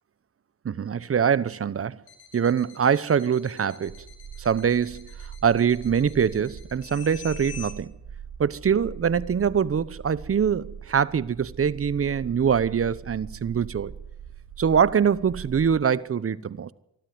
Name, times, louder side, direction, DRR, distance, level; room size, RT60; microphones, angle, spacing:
voice 1, 0.6-2.0 2.3-3.9 4.4-5.1 5.4-7.9 8.4-13.9 14.6-16.7, right 7 dB, 30° right, 0.9 m, -23 dB
sound 1, 2.1-7.7, left 8 dB, 50° left, 3.8 m, -46 dB
sound 2, 3.9-15.8, right 7 dB, 55° right, 3.6 m, -42 dB
24.0 x 12.5 x 9.5 m
supercardioid pair, 75°, 45 cm